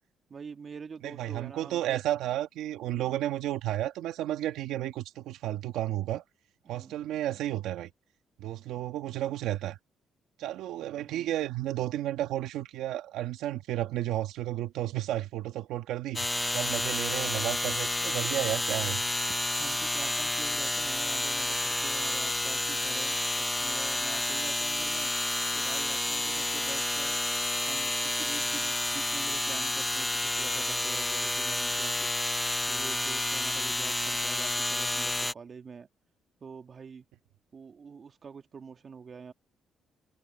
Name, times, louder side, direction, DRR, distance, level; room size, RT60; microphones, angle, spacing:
voice 1, 0.3-2.0 2.8-3.2 6.7-7.0 10.8-11.3 19.6-25.1 25.5-27.2 27.7-35.9 36.4-37.1 37.5-39.3, right 6 dB, 45° right, 2.1 m, -46 dB
voice 2, 1.0-6.2 6.7-7.9 8.4-9.8 10.4-19.0, right 13 dB, 90° right, 1.6 m, -32 dB
sound 1, 16.1-35.3, left 1 dB, 10° left, 0.4 m, -30 dB
cardioid pair, 90°, 0 cm